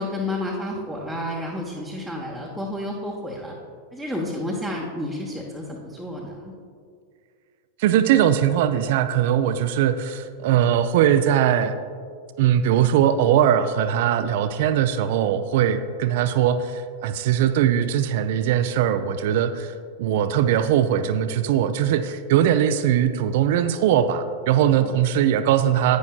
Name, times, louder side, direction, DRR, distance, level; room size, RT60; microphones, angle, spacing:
voice 1, 0.0-3.5 3.9-6.5 24.7-25.0, left 1 dB, ahead, -4 dB, 1.0 m, -31 dB
voice 2, 7.8-11.8 12.4-26.0, right 10 dB, 50° right, 11 dB, 0.4 m, -20 dB
11.0 x 9.2 x 2.4 m, 2.2 s
figure-of-eight pair, 90°, 0 cm